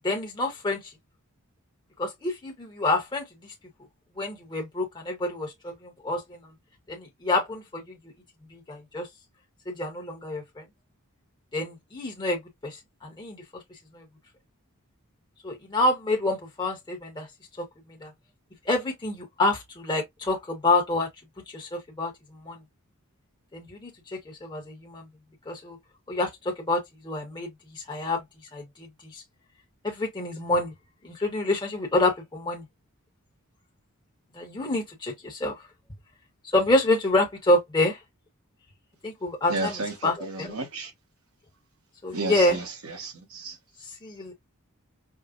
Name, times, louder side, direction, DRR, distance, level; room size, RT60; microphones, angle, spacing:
voice 1, 0.0-0.8 2.0-3.2 4.2-6.4 6.9-8.0 8.5-9.1 9.7-10.6 11.5-13.6 13.9-14.0 15.4-17.3 17.6-17.7 18.0-18.1 18.7-21.1 21.5-22.1 22.4-22.6 23.5-23.9 24.3-25.0 25.5-25.8 26.1-28.2 28.5-28.9 29.1-29.2 29.8-30.7 31.0-32.6 34.3-35.6 36.5-38.0 39.0-40.6 42.0-42.6 44.0-44.3, left 2 dB, 20° left, 0.9 m, -27 dB
voice 2, 39.5-39.9 40.5-40.9 42.1-42.3 43.0-43.5, right 3 dB, 70° right, 1.1 m, -31 dB
4.7 x 2.1 x 2.4 m
head